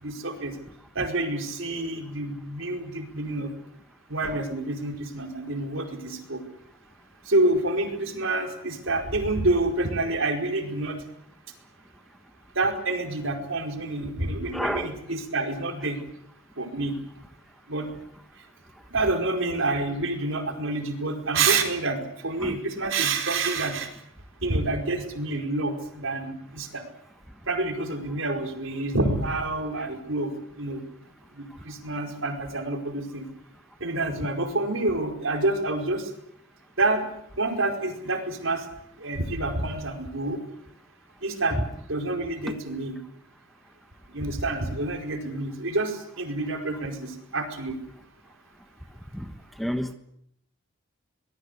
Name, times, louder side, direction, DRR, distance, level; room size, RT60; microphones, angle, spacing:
voice 1, 0.0-0.5 0.9-3.5 4.1-6.4 7.3-11.0 12.5-16.0 16.6-17.0 17.7-17.9 18.9-23.9 24.4-26.8 27.5-30.8 31.4-33.3 33.8-36.1 36.8-37.0 37.4-38.6 39.0-40.4 41.2-43.0 44.1-47.8, right 2 dB, 65° right, 4 dB, 4.9 m, -28 dB
voice 2, 14.5-14.9 22.4-22.5 49.1-49.3 49.6-49.9, equal, ahead, 8 dB, 1.2 m, -29 dB
23.5 x 20.5 x 8.3 m, 0.75 s
head